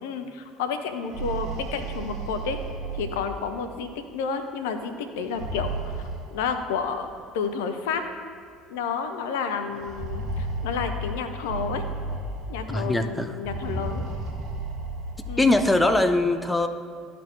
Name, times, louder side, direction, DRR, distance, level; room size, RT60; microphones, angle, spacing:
voice 1, 0.0-2.6 2.9-6.0 6.3-7.1 7.3-8.0 8.7-11.8 12.5-14.0 15.3-15.5, left 5 dB, 70° left, 8 dB, 0.5 m, -30 dB
sound 1, 0.9-3.8 5.1-6.8 7.8-7.9 8.3-8.4 9.7-12.8 13.4-16.0, right 2 dB, 50° right, 1.3 m, -33 dB
voice 2, 12.7-13.4 15.4-16.7, left 2 dB, 10° left, 8 dB, 0.5 m, -21 dB
12.0 x 4.2 x 3.2 m, 2.2 s
figure-of-eight pair, 60°, 0 cm